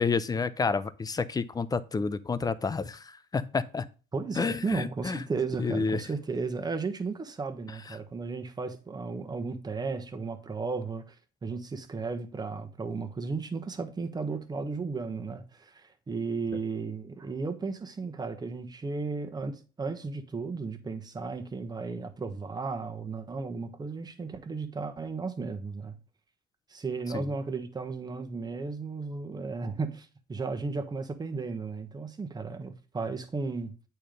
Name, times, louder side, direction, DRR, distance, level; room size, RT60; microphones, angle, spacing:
voice 1, 0.0-3.8 4.4-5.3 5.6-6.0 7.9-8.0 27.1-27.3, left 4 dB, 20° left, 0.6 m, -29 dB
voice 2, 4.1-11.1 11.4-25.9 26.7-33.7, right 4 dB, 25° right, 1.3 m, -34 dB
8.8 x 4.6 x 5.2 m
cardioid pair, 110°, 17 cm